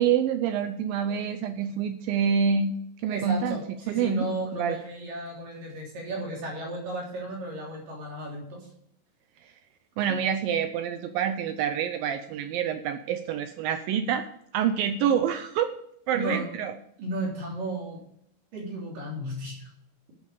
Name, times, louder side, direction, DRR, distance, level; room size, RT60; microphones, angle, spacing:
voice 1, 0.0-2.8 3.0-3.6 3.9-4.8 9.4-9.5 10.0-14.2 14.5-15.7 16.1-16.7, right 8 dB, 80° right, 9 dB, 2.2 m, -27 dB
voice 2, 3.1-8.7 10.0-10.2 16.1-16.5 17.0-18.0 18.5-19.7, right 1 dB, 55° right, -2 dB, 4.8 m, -34 dB
13.0 x 8.2 x 4.9 m, 0.70 s
omnidirectional pair, 4.6 m